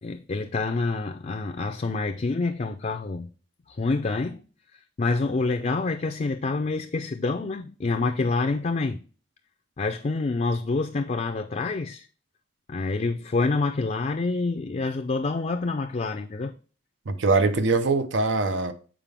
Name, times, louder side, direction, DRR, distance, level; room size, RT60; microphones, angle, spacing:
voice 1, 0.0-3.3 3.7-4.4 5.0-9.0 9.8-12.1 12.7-16.5, left 3 dB, 40° left, 0.4 m, -27 dB
voice 2, 17.1-18.7, right 3 dB, 75° right, 0.7 m, -22 dB
7.4 x 4.5 x 3.4 m
head